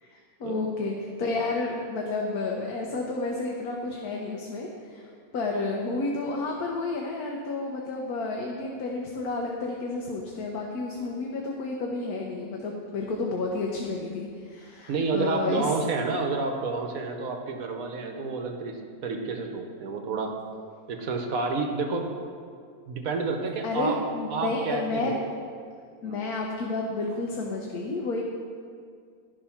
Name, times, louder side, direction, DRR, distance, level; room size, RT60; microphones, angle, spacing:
voice 1, 0.0-15.7 23.6-25.2 26.0-28.2, left 3 dB, 85° left, -1 dB, 1.4 m, -31 dB
voice 2, 14.9-20.3 20.9-22.1 22.9-24.0 24.3-25.2 26.0-26.2, right 4 dB, 70° right, 4 dB, 1.3 m, -29 dB
11.0 x 5.3 x 5.8 m, 2.2 s
omnidirectional pair, 1.6 m